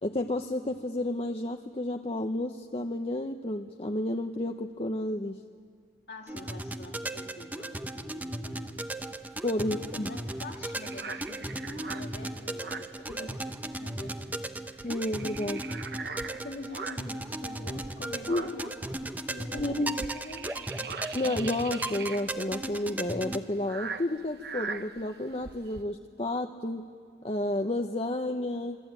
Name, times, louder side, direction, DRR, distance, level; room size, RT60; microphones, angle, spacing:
voice 1, 0.0-5.4 9.4-10.1 13.1-13.3 14.8-15.6 18.3-18.5 19.6-19.9 21.1-26.9 27.2-28.8, left 1 dB, 35° left, 3 dB, 0.9 m, -31 dB
voice 2, 6.1-8.9 9.6-14.7 16.4-20.9, left 2 dB, 70° left, 1 dB, 1.9 m, -46 dB
sound 1, 6.3-23.4, right 1 dB, 10° right, 0.8 m, -37 dB
sound 2, 8.8-13.7 14.0-14.2 14.5-17.2 17.7-25.8, right 5 dB, 65° right, 1.0 m, -41 dB
27.0 x 23.0 x 9.0 m, 2.1 s
head